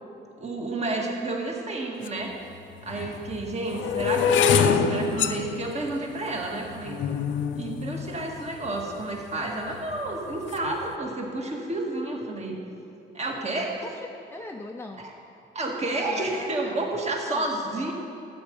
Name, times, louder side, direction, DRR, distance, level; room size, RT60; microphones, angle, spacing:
voice 1, 0.4-2.3 2.8-7.0 7.5-12.6 13.1-13.9 15.0-15.1 15.5-17.9, right 2 dB, 35° right, 0 dB, 1.9 m, -30 dB
sound 1, 2.0-2.1 2.9-9.0 9.7-10.1 10.3-10.7, left 7 dB, 70° left, 0.6 m, -26 dB
voice 2, 13.8-15.0 15.9-16.8 17.2-17.4, left 2 dB, 10° left, 3 dB, 0.6 m, -40 dB
13.0 x 8.7 x 5.4 m, 2.8 s
cardioid pair, 90°, 20 cm